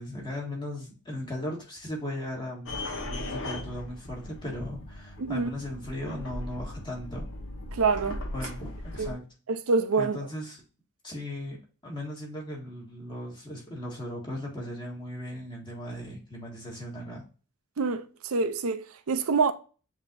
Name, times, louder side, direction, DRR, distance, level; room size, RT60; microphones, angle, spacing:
voice 1, 0.0-7.3 8.3-8.7 8.9-9.2 10.0-10.6 11.0-11.6 11.8-17.2, left 1 dB, 20° left, 1.7 m, -37 dB
sound 1, 2.7-9.1, left 1 dB, 65° left, 1.1 m, -38 dB
voice 2, 5.2-5.5 7.8-8.2 9.0-9.2 9.5-10.2 17.8-18.1 18.3-19.5, right 4 dB, 75° right, 0.5 m, -26 dB
7.1 x 2.9 x 2.5 m
head